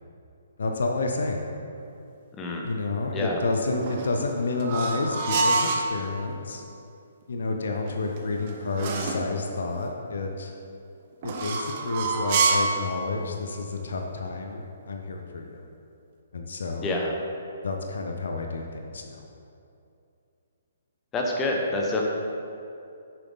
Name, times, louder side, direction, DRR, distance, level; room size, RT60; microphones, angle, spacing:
voice 1, 0.6-1.4 2.6-6.6 7.3-10.5 11.2-15.6 16.3-17.0 17.6-19.2, left 3 dB, 60° left, 3 dB, 0.8 m, -30 dB
sound 1, 3.7-5.9 7.9-9.3 11.2-12.8, right 3 dB, 35° right, 0.8 m, -27 dB
voice 2, 16.8-17.2 21.1-22.1, left 2 dB, 15° left, 0 dB, 1.0 m, -27 dB
9.7 x 6.8 x 4.0 m, 2.6 s
figure-of-eight pair, 130°, 0 cm